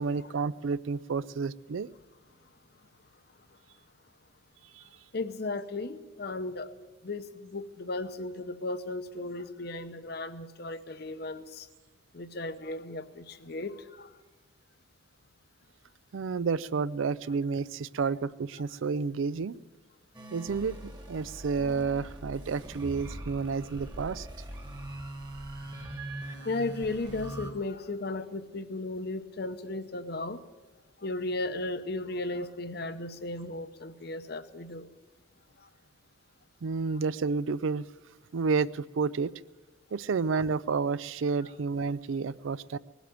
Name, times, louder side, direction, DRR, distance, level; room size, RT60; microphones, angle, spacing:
voice 1, 0.0-1.9 16.1-19.6 20.3-24.3 36.6-37.9 38.3-39.3 39.9-42.8, right 5 dB, 80° right, 18 dB, 0.4 m, -30 dB
voice 2, 5.1-6.7 7.0-11.7 12.1-14.1 26.4-30.4 31.0-34.9 35.6-35.7 36.9-37.0 41.4-41.5, left 2 dB, 55° left, 11 dB, 0.8 m, -35 dB
sound 1, 20.1-27.5, right 1 dB, 20° right, 1.4 m, -41 dB
19.5 x 8.2 x 9.1 m, 1.3 s
head